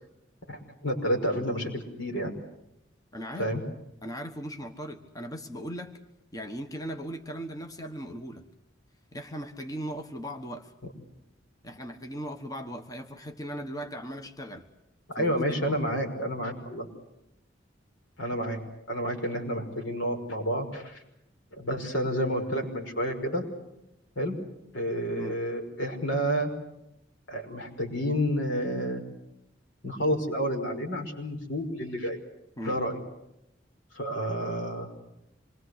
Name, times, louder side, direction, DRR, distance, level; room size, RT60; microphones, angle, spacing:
voice 1, 0.5-2.3 3.4-3.6 15.1-16.9 18.2-18.6 18.9-21.0 21.5-23.5 24.2-24.4 24.7-26.5 27.3-29.0 29.8-32.2 32.6-33.0 33.9-34.9, equal, 80° left, 4 dB, 5.7 m, -30 dB
voice 2, 3.1-3.5 4.0-6.0 6.3-8.4 9.1-10.7 11.6-14.7 15.2-15.3 15.7-15.8 25.2-25.4 32.6-32.8, equal, 20° left, 6 dB, 1.3 m, -38 dB
27.0 x 22.5 x 8.1 m, 0.86 s
head